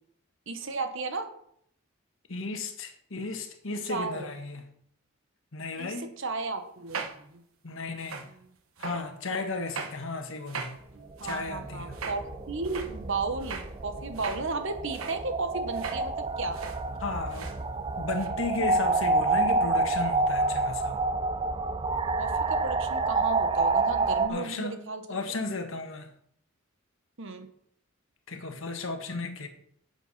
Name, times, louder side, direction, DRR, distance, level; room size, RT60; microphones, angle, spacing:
voice 1, 0.5-1.3 3.8-4.3 5.7-7.1 11.2-16.6 22.2-25.0 27.2-27.5, right 3 dB, 65° right, 1.3 m, -34 dB
voice 2, 2.3-4.7 5.5-6.1 7.6-8.3 8.8-10.8 11.2-11.9 17.0-17.5 18.0-21.0 24.3-26.1 28.3-29.5, left 3 dB, 65° left, 1.5 m, -34 dB
sound 1, 6.8-8.5 8.8-9.1 9.7-10.0 10.5-12.2 12.6-12.9 13.4-14.5 14.9-15.2 15.7-16.1 16.3-17.0 17.3-17.6 18.1-18.3, right 5 dB, 85° right, 1.2 m, -40 dB
sound 2, 11.0-24.3, right 3 dB, 25° right, 0.6 m, -28 dB
10.5 x 8.1 x 4.2 m
head